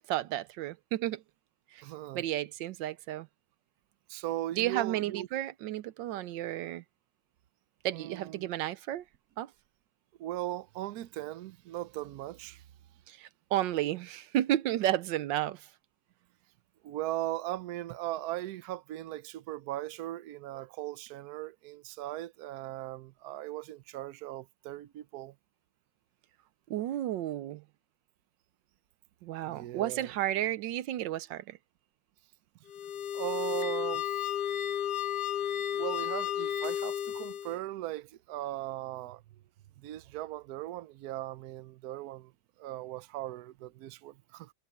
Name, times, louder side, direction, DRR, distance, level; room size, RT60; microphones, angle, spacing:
voice 1, 0.1-1.2 1.7-1.8 2.1-3.3 4.5-6.8 7.8-9.0 9.4-9.5 13.1-15.7 26.7-27.6 29.2-31.6, right 13 dB, 85° right, 1.3 m, -32 dB
voice 2, 1.8-2.2 4.1-5.3 7.9-8.5 10.2-12.6 16.8-25.3 29.4-30.1 33.1-34.2 35.7-39.2 39.8-42.3 42.6-44.5, right 15 dB, 65° right, 1.1 m, -38 dB
sound 1, 32.7-37.6, left 10 dB, 65° left, 1.5 m, -33 dB
omnidirectional pair, 2.0 m